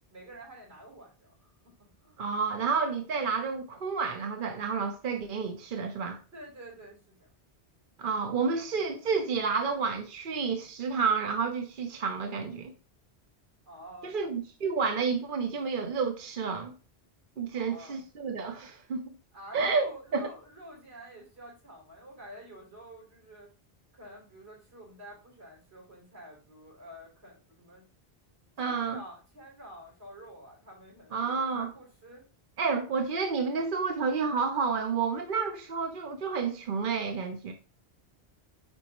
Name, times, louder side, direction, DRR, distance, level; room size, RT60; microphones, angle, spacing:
voice 1, 0.1-2.2 6.3-7.3 13.7-14.1 17.5-18.0 19.3-23.5 23.9-27.9 28.6-32.2, right 1 dB, 75° right, 4.3 m, -49 dB
voice 2, 2.2-6.2 8.0-12.7 14.0-16.7 17.4-19.0 19.5-19.9 20.1-20.3 28.6-29.0 31.1-31.7 32.6-37.5, right 5 dB, 55° right, 0.9 m, -30 dB
9.9 x 4.1 x 3.0 m
omnidirectional pair, 1.1 m